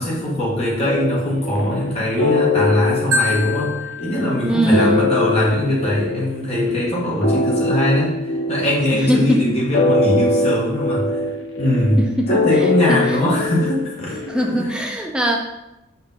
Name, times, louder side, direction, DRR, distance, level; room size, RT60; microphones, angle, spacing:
voice 1, 0.0-11.2 11.6-12.0 12.3-14.2 14.5-14.7, left 1 dB, 30° left, -5 dB, 1.8 m, -21 dB
sound 1, 0.8-14.6, left 2 dB, 70° left, 1.0 m, -22 dB
Marimba xylophone, 3.1-5.2, left 1 dB, 85° right, 1.4 m, -26 dB
voice 2, 4.4-5.1 8.9-9.5 12.0-13.2 14.1-15.4, equal, 5° right, 1 dB, 0.4 m, -21 dB
5.5 x 4.3 x 4.2 m, 0.94 s
head